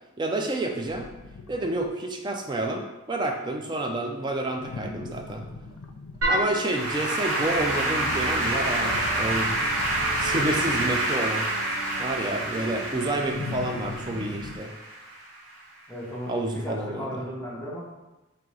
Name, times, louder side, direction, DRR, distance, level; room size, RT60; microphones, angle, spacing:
voice 1, 0.2-1.1 1.5-5.4 6.3-9.5 10.2-11.5 12.0-14.7 16.3-17.2, right 2 dB, 20° right, 3 dB, 0.3 m, -29 dB
sound 1, 0.9-1.9 4.6-10.9 13.2-14.6, left 3 dB, 85° left, 0.4 m, -40 dB
Applause / Keyboard (musical), 6.2-15.5, right 1 dB, 85° right, 1.1 m, -27 dB
sound 2, 7.5-13.8, right 2 dB, 70° right, 0.7 m, -39 dB
voice 2, 15.9-17.8, equal, 10° left, -6 dB, 0.7 m, -35 dB
3.7 x 2.9 x 3.2 m, 1.0 s
head